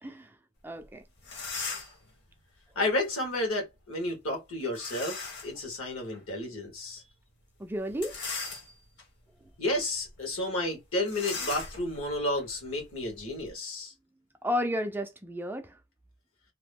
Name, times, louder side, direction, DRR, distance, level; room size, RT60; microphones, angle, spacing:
voice 1, 0.0-0.3 0.6-1.0 7.6-8.2 14.4-15.8, equal, 10° right, 0.3 m, -32 dB
sound 1, 0.8-0.9 1.2-2.1 4.7-5.6 6.1-6.2 7.9-9.0 9.6-9.8 10.0-10.2 11.1-13.5, left 4 dB, 55° left, 1.1 m, -38 dB
voice 2, 2.7-7.0 9.6-13.9, left 1 dB, 70° left, 1.4 m, -31 dB
2.9 x 2.2 x 3.4 m
head